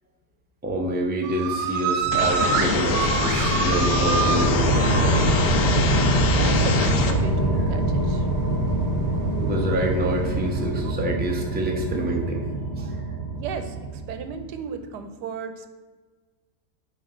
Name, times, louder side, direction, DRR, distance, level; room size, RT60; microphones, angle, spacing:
voice 1, 0.6-5.4 9.4-12.5 12.8-13.0, right 1 dB, 10° right, 0 dB, 0.5 m, -27 dB
sound 1, 1.2-6.1 6.3-6.8 7.1-8.0 8.5-10.9, right 7 dB, 70° right, 1.0 m, -28 dB
sound 2, 2.0-14.5, right 1 dB, 25° left, 2.1 m, -25 dB
sound 3, 2.1-7.1, left 4 dB, 70° left, 1.2 m, -24 dB
voice 2, 6.4-8.3 13.3-15.7, right 6 dB, 90° right, 8 dB, 1.2 m, -35 dB
9.4 x 3.4 x 4.3 m, 1.4 s
omnidirectional pair, 1.7 m